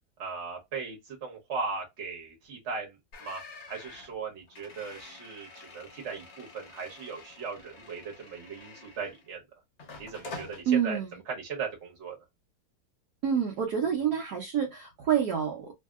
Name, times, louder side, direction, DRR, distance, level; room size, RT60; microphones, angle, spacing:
voice 1, 0.2-3.4 3.7-9.4 10.0-11.0 11.3-12.2, right 5 dB, 45° right, 1.3 m, -38 dB
sound 1, 3.1-9.4 9.8-10.6, left 3 dB, 55° left, 0.9 m, -47 dB
voice 2, 10.7-11.1 13.2-15.7, right 8 dB, 70° right, 1.2 m, -27 dB
3.1 x 2.7 x 2.3 m
omnidirectional pair, 1.9 m